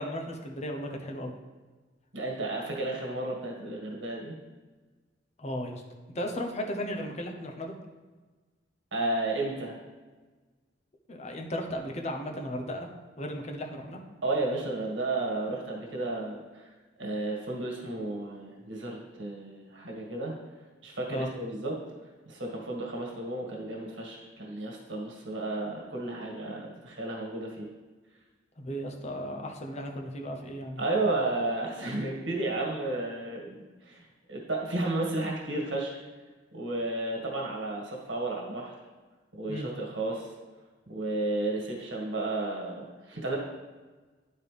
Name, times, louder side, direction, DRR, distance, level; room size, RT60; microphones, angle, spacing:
voice 1, 0.0-1.3 5.4-5.8 6.1-7.7 11.1-12.9 13.2-14.0 21.1-21.3 28.6-30.8 39.5-39.7, equal, 35° left, 2 dB, 0.8 m, -35 dB
voice 2, 2.1-4.4 8.9-9.8 14.2-16.6 17.0-20.3 20.8-21.8 22.3-27.7 30.8-34.0 34.3-35.9 36.5-38.7 39.3-40.3 40.9-43.4, right 2 dB, 85° right, -2 dB, 1.8 m, -32 dB
10.5 x 4.4 x 3.4 m, 1.3 s
head